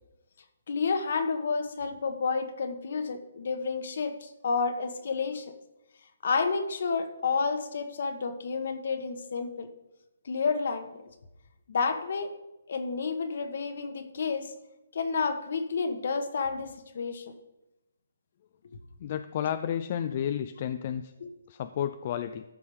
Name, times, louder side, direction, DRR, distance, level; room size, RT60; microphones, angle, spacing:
voice 1, 0.7-5.5 6.2-9.7 10.2-10.9 11.7-12.3 12.7-14.5 14.9-17.3 21.2-21.3, left 4 dB, 60° left, 8 dB, 1.3 m, -30 dB
voice 2, 19.0-21.1 21.5-22.4, left 9 dB, 40° left, 9 dB, 0.4 m, -31 dB
14.0 x 5.5 x 5.1 m, 0.96 s
hypercardioid pair, 150°, 0 cm